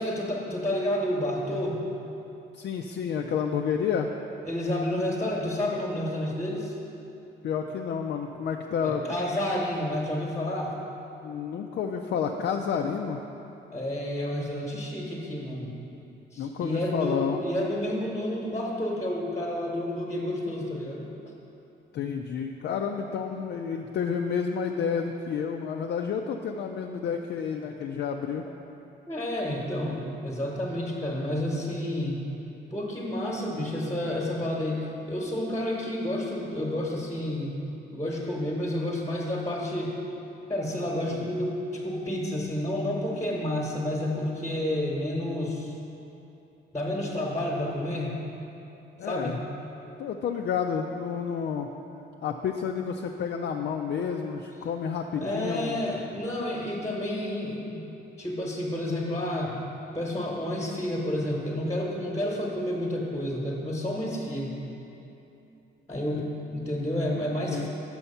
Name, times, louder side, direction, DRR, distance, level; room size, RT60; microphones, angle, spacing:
voice 1, 0.0-1.8 4.4-6.8 8.8-10.7 13.7-15.7 16.3-21.1 29.1-32.2 32.7-37.6 37.9-40.0 40.5-45.7 46.7-48.2 49.0-49.4 55.2-57.8 58.2-59.6 59.9-64.6 65.9-67.7, left 1 dB, 15° left, -3 dB, 1.1 m, -30 dB
voice 2, 2.5-4.1 7.4-9.0 11.2-13.2 16.4-17.4 21.9-28.5 49.0-49.4 50.0-51.7 52.2-55.8 66.1-66.2 67.3-67.7, left 7 dB, 55° left, 3 dB, 0.4 m, -30 dB
6.2 x 5.7 x 5.5 m, 2.9 s
cardioid pair, 90°, 20 cm